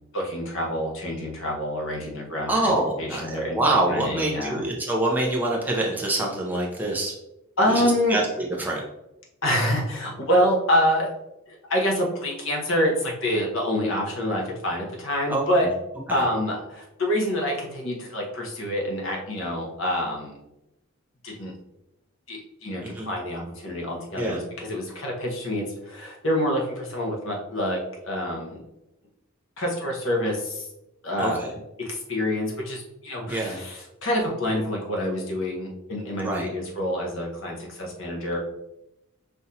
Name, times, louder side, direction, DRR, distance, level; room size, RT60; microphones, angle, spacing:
voice 1, 0.1-2.7 3.0-4.6 7.6-8.2 9.4-11.1 11.5-15.7 16.1-20.3 21.2-21.5 22.3-27.8 28.1-28.6 29.6-30.7 31.0-31.5 31.8-38.4, equal, 70° left, -1 dB, 1.1 m, -26 dB
voice 2, 2.5-7.1 7.7-8.8 15.3-15.7 16.1-16.2 22.8-23.1 24.1-24.4 31.2-31.5 33.3-33.6 36.2-36.5, right 2 dB, 10° right, -2 dB, 0.8 m, -26 dB
5.6 x 2.6 x 2.8 m, 0.89 s
head